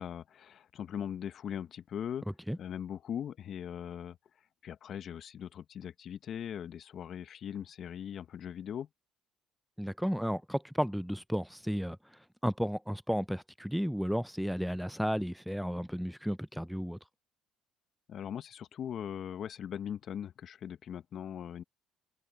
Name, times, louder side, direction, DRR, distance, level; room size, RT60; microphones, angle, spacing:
voice 1, 0.0-2.3 2.6-4.2 4.6-8.9 18.1-21.6, left 9 dB, 55° left, 1.1 m, -40 dB
voice 2, 9.8-12.0 12.4-17.0, equal, ahead, 0.4 m, -33 dB
hypercardioid pair, 65°, 0 cm